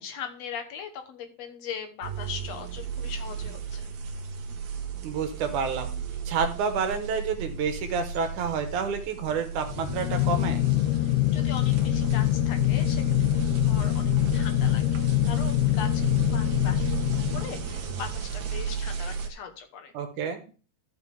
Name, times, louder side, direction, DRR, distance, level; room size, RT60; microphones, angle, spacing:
voice 1, 0.0-3.8 11.0-19.9, left 7 dB, 65° left, 6 dB, 2.2 m, -40 dB
sound 1, 2.0-19.3, right 6 dB, 75° right, 2.7 m, -35 dB
voice 2, 5.0-5.9 6.3-10.7 19.9-20.4, right 6 dB, 90° right, 6 dB, 2.9 m, -29 dB
sound 2, 9.7-18.0, left 15 dB, 85° left, 1.4 m, -25 dB
14.5 x 6.1 x 3.5 m, 0.37 s
omnidirectional pair, 3.4 m